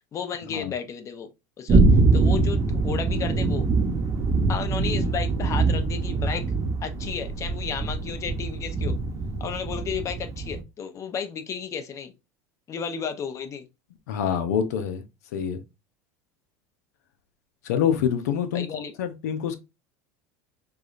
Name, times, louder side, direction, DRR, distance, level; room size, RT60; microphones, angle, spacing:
voice 1, 0.1-1.3 1.6-1.8 2.1-3.7 4.5-6.4 6.8-8.9 9.4-12.1 12.7-13.6 18.5-18.9, left 7 dB, 35° left, 0.8 m, -33 dB
sound 1, 1.7-10.6, right 3 dB, 35° right, 0.8 m, -23 dB
voice 2, 14.1-15.0 15.3-15.6 17.6-19.6, left 8 dB, 85° left, 0.7 m, -26 dB
4.8 x 2.4 x 2.5 m
supercardioid pair, 100°, 9 cm